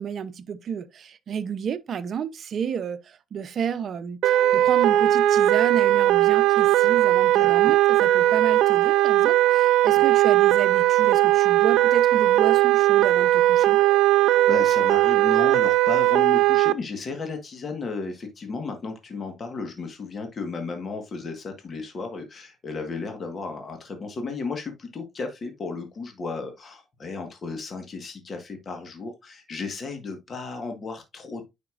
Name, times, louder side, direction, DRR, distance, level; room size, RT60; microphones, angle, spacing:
voice 1, 0.0-13.8, right 7 dB, 50° right, 0.7 m, -31 dB
sound 1, 4.2-16.7, right 15 dB, 85° right, 0.5 m, -19 dB
voice 2, 7.4-7.7 9.9-10.0 14.3-31.5, left 4 dB, 40° left, 1.5 m, -34 dB
9.4 x 5.1 x 2.5 m
cardioid pair, 125°, 0 cm